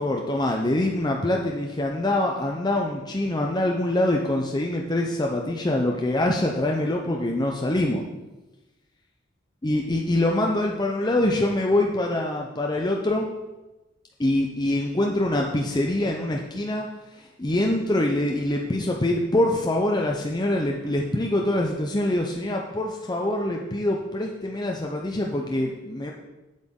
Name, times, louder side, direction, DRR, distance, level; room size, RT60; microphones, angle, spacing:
voice 1, 0.0-8.0 9.6-13.3 14.2-16.9 17.4-26.1, left 1 dB, 20° left, 0 dB, 0.6 m, -24 dB
8.1 x 7.9 x 3.7 m, 1.1 s
head